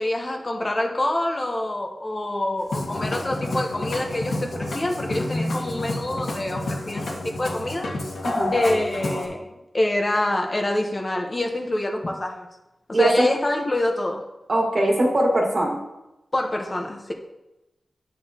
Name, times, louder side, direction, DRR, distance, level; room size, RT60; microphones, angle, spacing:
voice 1, 0.0-7.9 8.5-9.5 9.7-12.5 12.9-14.3 16.3-17.1, left 1 dB, 30° left, 2 dB, 1.0 m, -26 dB
Musical instrument, 2.6-9.3, left 2 dB, 90° left, 1.9 m, -29 dB
voice 2, 12.9-13.3 14.5-15.8, right 1 dB, 45° right, 0 dB, 1.7 m, -21 dB
8.9 x 8.9 x 2.9 m, 0.97 s
wide cardioid pair, 110°, 0 cm